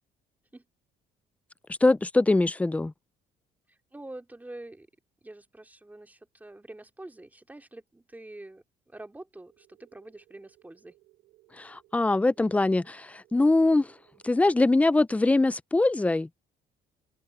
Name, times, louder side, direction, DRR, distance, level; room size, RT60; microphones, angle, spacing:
voice 1, 1.8-2.9 11.6-13.9 14.2-16.3, left 2 dB, 10° left, 0.5 m, -23 dB
voice 2, 3.7-4.9 5.2-10.9 13.6-13.8, right 2 dB, 10° right, 3.4 m, -46 dB
sound 1, 9.4-14.4, right 19 dB, 85° right, 4.1 m, -62 dB
open air
cardioid pair, 110°, 17 cm